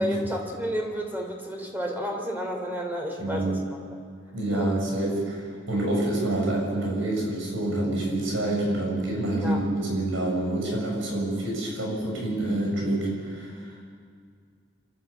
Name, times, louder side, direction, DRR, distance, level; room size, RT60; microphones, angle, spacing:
voice 1, 0.0-3.5 4.5-4.7 9.4-9.6, equal, 10° right, 1 dB, 3.3 m, -31 dB
voice 2, 3.2-3.6 4.3-5.4 5.7-13.8, right 1 dB, 75° right, -2 dB, 7.3 m, -27 dB
26.5 x 13.0 x 8.6 m, 2.1 s
head